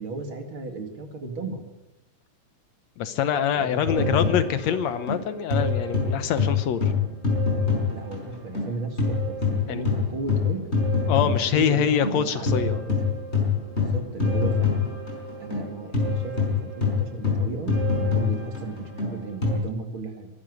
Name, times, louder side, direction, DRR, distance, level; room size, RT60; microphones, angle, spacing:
voice 1, 0.0-1.6 3.6-4.3 7.9-10.6 11.2-13.0 13.7-14.7 15.4-20.3, right 3 dB, 45° right, 5 dB, 2.8 m, -34 dB
voice 2, 3.0-6.9 9.7-9.9 11.1-12.8, left 8 dB, 70° left, 12 dB, 2.1 m, -25 dB
sound 1, 3.9-8.7 9.0-19.5, left 4 dB, 20° left, 5.3 m, -25 dB
23.5 x 12.0 x 9.3 m, 0.94 s
omnidirectional pair, 3.4 m